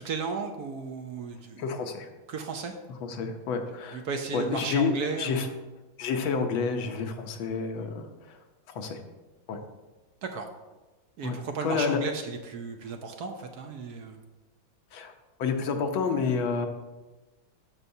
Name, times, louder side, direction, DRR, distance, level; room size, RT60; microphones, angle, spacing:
voice 1, 0.0-1.6 2.3-2.7 3.9-5.6 10.2-10.5 11.2-14.2, right 5 dB, 65° right, 4 dB, 1.0 m, -34 dB
voice 2, 1.6-2.1 3.0-4.0 4.3-5.5 6.0-8.4 8.7-9.0 9.5-9.6 11.2-11.3 11.6-12.0 14.9-15.1 15.4-16.7, left 5 dB, 85° left, 4 dB, 1.7 m, -29 dB
13.5 x 5.6 x 2.7 m, 1.2 s
omnidirectional pair, 2.2 m